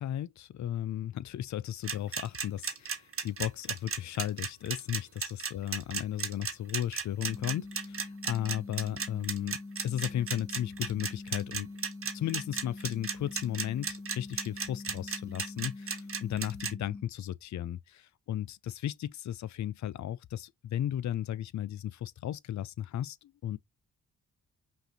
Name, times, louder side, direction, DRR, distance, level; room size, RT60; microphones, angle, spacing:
voice 1, 0.0-9.6 9.8-11.7 12.1-23.6, left 11 dB, 60° left, 0.5 m, -35 dB
sound 1, 1.8-16.7, right 5 dB, 40° right, 1.3 m, -34 dB
sound 2, 7.3-17.0, left 2 dB, 20° left, 1.3 m, -45 dB
5.6 x 2.6 x 2.8 m
supercardioid pair, 50°, 33 cm